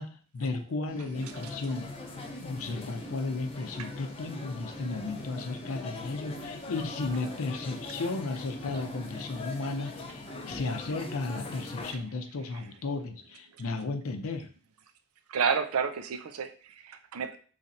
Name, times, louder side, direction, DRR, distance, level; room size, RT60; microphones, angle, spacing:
voice 1, 0.0-1.9 2.4-14.5, left 3 dB, 75° left, 6 dB, 0.5 m, -34 dB
sound 1, 0.9-11.8, left 1 dB, 5° right, 0.7 m, -45 dB
sound 2, 1.1-11.9, left 3 dB, 25° left, 0.4 m, -43 dB
voice 2, 15.3-17.4, right 6 dB, 80° right, 9 dB, 0.5 m, -30 dB
3.2 x 2.6 x 4.1 m, 0.40 s
head